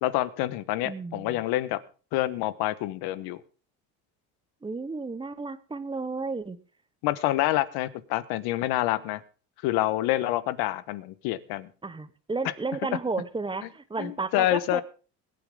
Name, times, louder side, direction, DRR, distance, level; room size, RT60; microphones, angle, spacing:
voice 1, 0.0-1.8 2.1-3.4 7.0-9.2 9.6-11.7 14.0-14.8, left 15 dB, 80° left, 16 dB, 1.3 m, -27 dB
voice 2, 0.8-1.4 4.6-6.6 11.8-14.8, right 3 dB, 15° right, 13 dB, 1.1 m, -33 dB
21.5 x 8.9 x 3.7 m, 0.36 s
cardioid pair, 115°, 38 cm